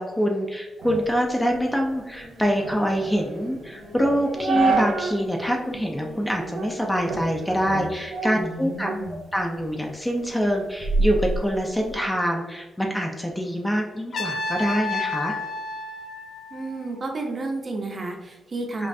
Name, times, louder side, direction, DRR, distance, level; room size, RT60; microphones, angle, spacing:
voice 1, 0.0-8.9 9.3-15.4 18.8-18.9, equal, 10° left, 1 dB, 0.4 m, -25 dB
sound 1, 0.8-5.3 5.6-5.7 6.4-6.7 7.1-9.2 9.6-12.0, right 3 dB, 85° right, 0.5 m, -29 dB
sound 2, 2.1-2.7 3.4-5.2 5.6-8.1, left 1 dB, 40° left, 0.9 m, -45 dB
voice 2, 8.3-9.2 16.5-18.9, right 2 dB, 35° right, 2 dB, 0.6 m, -31 dB
Trumpet, 14.1-17.1, left 3 dB, 65° left, 0.4 m, -31 dB
5.2 x 2.4 x 2.6 m, 1.1 s
cardioid pair, 115°, 0 cm